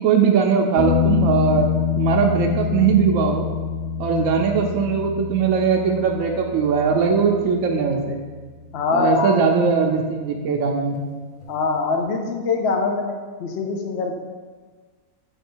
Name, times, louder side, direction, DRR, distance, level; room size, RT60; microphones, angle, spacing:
voice 1, 0.0-1.7 2.0-3.5 4.0-8.2 8.9-11.0, right 6 dB, 70° right, 1 dB, 1.0 m, -20 dB
sound 1, 0.8-8.4 11.4-11.5, left 7 dB, 85° left, 1.1 m, -26 dB
voice 2, 8.7-9.4 11.5-14.1, left 4 dB, 55° left, 3 dB, 0.9 m, -23 dB
6.8 x 3.2 x 4.4 m, 1.4 s
omnidirectional pair, 1.5 m